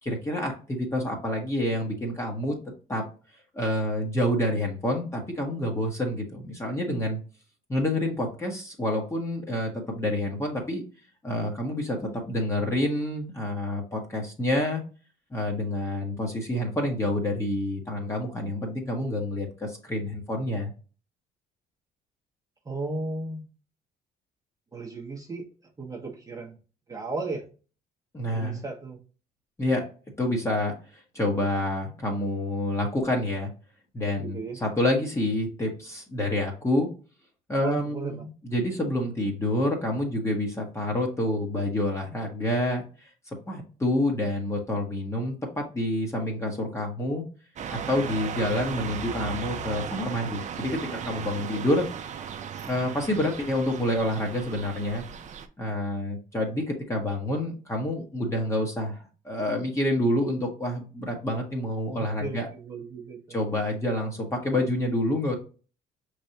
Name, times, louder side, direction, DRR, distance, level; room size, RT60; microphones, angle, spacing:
voice 1, 0.0-2.5 2.9-3.0 3.5-7.2 7.7-10.8 11.2-14.8 15.3-20.7 28.1-28.6 29.6-29.8 30.2-33.5 33.9-36.9 37.5-43.1 43.5-47.2 47.7-51.9 52.7-55.0 55.6-62.5 63.3-65.4, left 1 dB, 15° left, 0 dB, 1.1 m, -28 dB
voice 2, 22.7-23.4 24.7-25.4 25.8-26.5 26.9-27.4 28.3-29.0 34.2-34.6 37.6-38.2 62.0-63.2, right 3 dB, 20° right, -2 dB, 0.9 m, -35 dB
sound 1, 47.6-55.5, right 7 dB, 45° right, 0.6 m, -36 dB
5.2 x 3.3 x 2.8 m, 0.36 s
cardioid pair, 110°, 17 cm